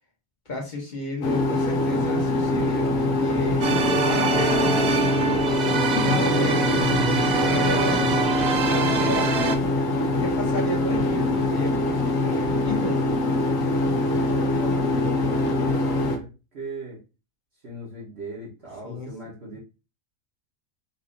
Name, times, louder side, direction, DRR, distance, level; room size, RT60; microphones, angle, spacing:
voice 1, 0.4-4.7 5.6-6.8 7.3-8.2 8.6-9.7 10.2-13.0 18.8-19.1, left 2 dB, 35° left, -1 dB, 1.2 m, -32 dB
sound 1, 1.2-16.2, left 2 dB, 75° left, 1.1 m, -23 dB
sound 2, 3.6-9.6, right 4 dB, 70° right, 0.4 m, -24 dB
voice 2, 3.8-5.0 14.0-17.0 17.6-19.6, right 2 dB, 50° right, -5 dB, 1.3 m, -38 dB
4.3 x 2.6 x 2.5 m, 0.30 s
omnidirectional pair, 1.4 m